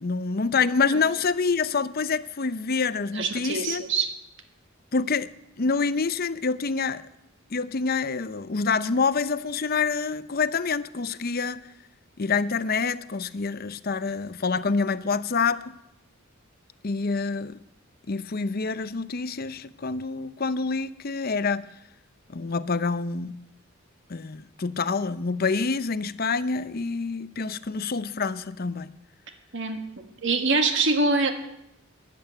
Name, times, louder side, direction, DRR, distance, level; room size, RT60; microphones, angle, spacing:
voice 1, 0.0-3.8 4.9-5.3 5.6-7.0 7.5-11.6 12.2-15.7 16.8-17.6 18.1-21.7 22.3-23.4 24.1-28.9, left 4 dB, 45° left, 0.7 m, -27 dB
voice 2, 3.1-4.1 29.5-29.8 30.2-31.3, right 3 dB, 60° right, 1.6 m, -24 dB
13.5 x 11.0 x 9.2 m
head